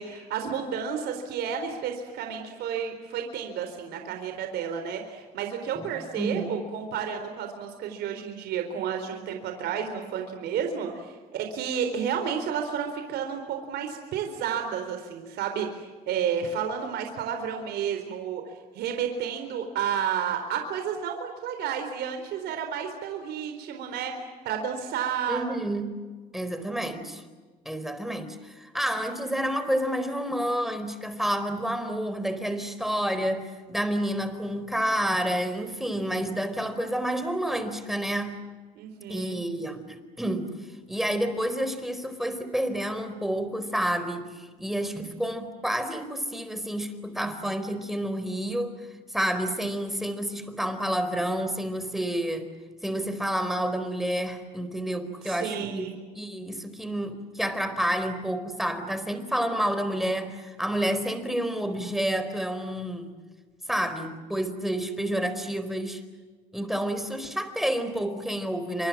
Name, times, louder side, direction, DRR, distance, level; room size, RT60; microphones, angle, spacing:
voice 1, 0.0-18.4 18.7-25.5 38.8-39.4 55.2-55.9, right 7 dB, 80° right, 5 dB, 4.2 m, -31 dB
voice 2, 6.2-6.5 25.3-25.9 26.3-27.2 27.6-38.4 39.1-40.5 40.9-48.7 49.1-52.5 52.8-63.1 63.7-66.0 66.5-68.9, right 1 dB, ahead, 10 dB, 4.4 m, -29 dB
29.5 x 26.0 x 7.5 m, 1.4 s
cardioid pair, 110°, 17 cm